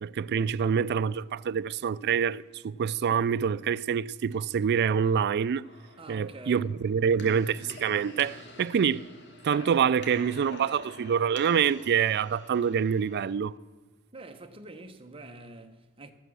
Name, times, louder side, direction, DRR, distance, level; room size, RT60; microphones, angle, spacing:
voice 1, 0.0-5.6 6.1-9.1 9.4-13.5, right 7 dB, 50° right, 0.3 m, -26 dB
sound 1, 5.6-13.3, left 1 dB, 50° left, 1.5 m, -47 dB
voice 2, 6.0-6.7 14.1-16.1, right 2 dB, 25° right, 0.9 m, -46 dB
13.0 x 9.1 x 6.2 m
head